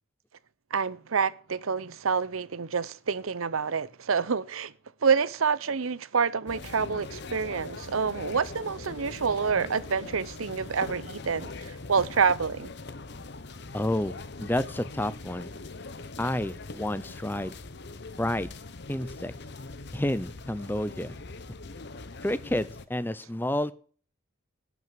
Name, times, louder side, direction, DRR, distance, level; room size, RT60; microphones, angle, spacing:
voice 1, 0.7-4.7 5.0-12.7, right 5 dB, 85° right, 0.8 m, -27 dB
sound 1, 6.5-22.8, left 3 dB, 55° left, 0.9 m, -42 dB
voice 2, 13.7-15.5 16.2-17.5 18.2-18.5 18.9-19.3 19.9-21.2 22.2-23.7, left 1 dB, 10° left, 0.6 m, -30 dB
12.0 x 5.9 x 9.0 m
head